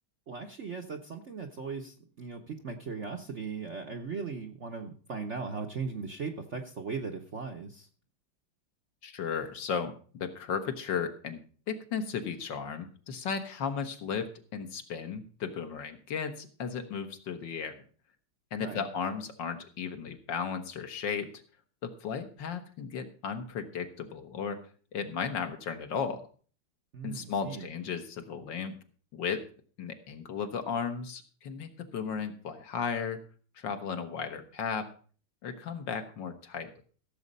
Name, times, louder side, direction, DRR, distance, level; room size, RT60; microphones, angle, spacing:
voice 1, 0.3-7.9 18.6-18.8 26.9-27.7, right 5 dB, 50° right, 4 dB, 0.9 m, -38 dB
voice 2, 9.0-11.4 11.7-17.8 18.5-21.3 21.8-24.6 24.9-26.2 27.0-28.7 29.1-29.4 29.8-33.2 33.6-34.9 35.4-36.8, left 6 dB, 65° left, 7 dB, 1.8 m, -35 dB
15.5 x 7.3 x 5.3 m, 0.42 s
omnidirectional pair, 2.3 m